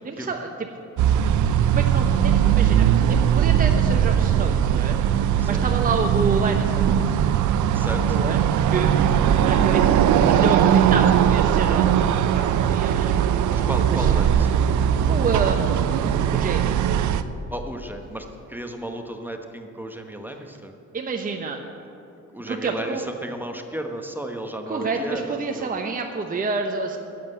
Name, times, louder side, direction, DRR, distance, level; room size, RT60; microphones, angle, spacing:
voice 1, 0.0-0.7 1.1-1.3 1.7-5.0 5.4-6.9 8.1-8.4 8.7-9.1 9.4-12.1 12.3-13.3 13.6-14.1 15.1-16.8 20.9-21.6 22.5-23.1 24.7-27.0, right 4 dB, 30° right, 3 dB, 0.9 m, -29 dB
sound 1, 1.0-17.2, right 9 dB, 75° right, 0.6 m, -19 dB
voice 2, 7.7-8.3 13.5-14.6 17.5-20.7 22.3-25.7, right 1 dB, 5° right, 4 dB, 1.0 m, -33 dB
10.5 x 7.7 x 8.2 m, 2.9 s
cardioid pair, 90°, 30 cm